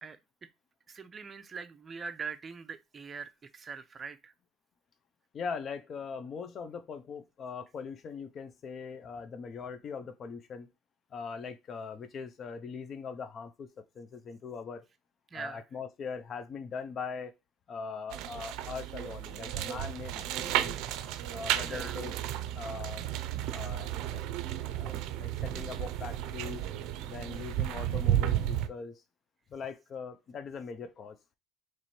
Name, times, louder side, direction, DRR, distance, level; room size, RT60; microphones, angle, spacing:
voice 1, 0.9-4.3 15.3-15.6 21.6-22.0, right 5 dB, 25° right, 0.5 m, -42 dB
voice 2, 5.3-10.7 11.1-14.9 15.3-17.3 17.7-20.8 21.3-22.1 22.5-23.0 23.5-24.3 24.7-26.6 27.1-29.0 29.5-31.2, left 5 dB, 40° left, 0.5 m, -41 dB
sound 1, 18.1-28.7, right 12 dB, 75° right, 0.4 m, -33 dB
3.1 x 3.1 x 4.2 m
cardioid pair, 130°, 0 cm